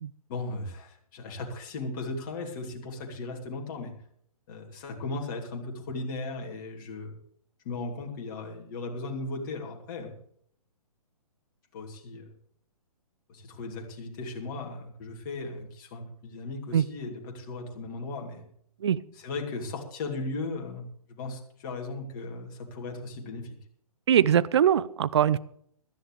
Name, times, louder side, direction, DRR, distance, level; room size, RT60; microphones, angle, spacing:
voice 1, 0.3-3.9 4.5-7.2 7.6-10.1 11.7-12.3 13.3-18.4 19.1-23.6, left 3 dB, 35° left, 1 dB, 2.8 m, -37 dB
voice 2, 24.1-25.4, right 9 dB, 45° right, 18 dB, 0.5 m, -22 dB
16.0 x 13.5 x 3.3 m, 0.65 s
figure-of-eight pair, 130°, 19 cm